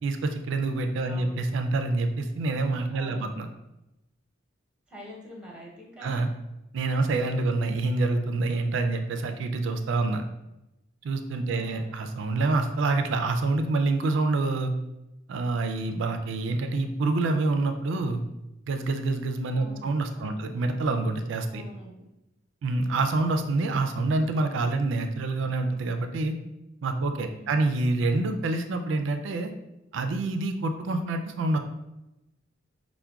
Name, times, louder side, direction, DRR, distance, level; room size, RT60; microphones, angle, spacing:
voice 1, 0.0-3.5 6.0-6.3 6.7-10.2 11.0-14.7 15.3-18.2 18.7-21.6 22.6-26.3 26.8-29.5 29.9-31.6, right 3 dB, 65° right, 6 dB, 0.3 m, -27 dB
voice 2, 1.0-1.4 2.9-3.4 4.9-6.1 11.5-11.9 19.5-20.4 21.5-22.1 27.2-27.7, equal, 5° right, -3 dB, 0.7 m, -46 dB
5.6 x 2.1 x 2.3 m, 0.93 s
head